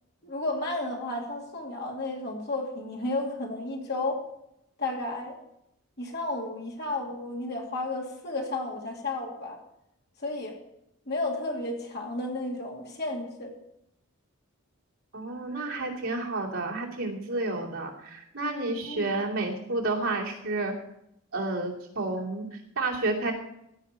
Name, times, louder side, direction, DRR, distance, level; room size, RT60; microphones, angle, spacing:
voice 1, 0.2-4.2 4.8-5.4 6.0-9.6 10.2-10.6 11.1-13.5 18.8-19.1, left 2 dB, 50° left, 0 dB, 2.6 m, -32 dB
voice 2, 15.1-20.7 21.3-23.3, right 2 dB, 75° right, -2 dB, 2.8 m, -30 dB
15.5 x 5.7 x 8.3 m, 0.81 s
head